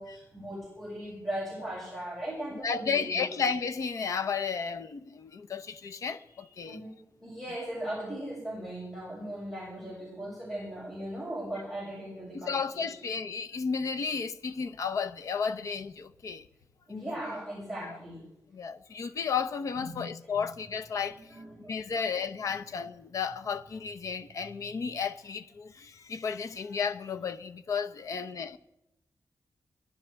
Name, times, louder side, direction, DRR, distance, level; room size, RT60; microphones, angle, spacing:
voice 1, 0.0-3.3 6.6-13.0 16.9-18.2 19.7-20.4 21.0-21.7 22.5-22.6, right 1 dB, 5° left, 6.8 m, -38 dB
voice 2, 2.6-6.8 12.3-16.4 16.9-17.1 17.8-18.0 18.5-21.2 21.7-28.6, left 6 dB, 60° left, 0.8 m, -33 dB
22.5 x 14.5 x 3.5 m
wide cardioid pair, 175°, 6 cm